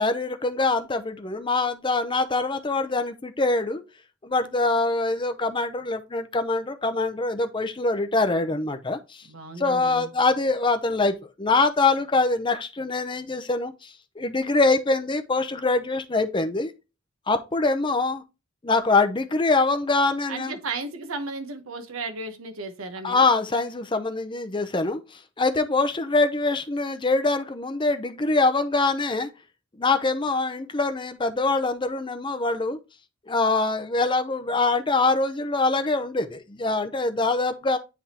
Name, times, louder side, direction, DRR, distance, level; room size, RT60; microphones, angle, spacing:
voice 1, 0.0-3.8 4.2-9.2 9.6-16.7 17.3-18.2 18.6-20.6 23.0-25.0 25.4-29.3 29.8-32.8 33.3-37.8, left 3 dB, 25° left, 0.6 m, -24 dB
voice 2, 9.3-10.1 20.3-23.2, right 3 dB, 80° right, 1.1 m, -34 dB
10.0 x 3.5 x 2.9 m
head